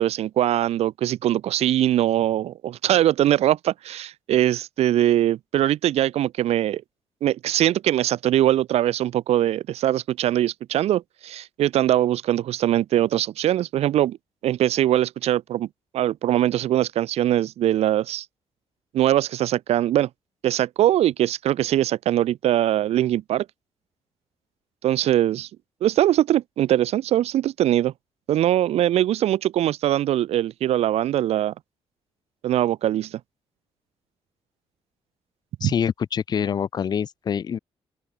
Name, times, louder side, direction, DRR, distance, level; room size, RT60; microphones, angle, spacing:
voice 1, 0.0-6.8 7.2-14.2 14.4-15.7 15.9-18.2 18.9-20.1 20.4-23.4 24.8-25.5 25.8-27.9 28.3-31.5 32.4-33.2 35.6-35.7, right 12 dB, 85° right, 4.7 m, -22 dB
voice 2, 35.6-37.6, left 7 dB, 40° left, 3.5 m, -25 dB
open air
cardioid pair, 175°, 10 cm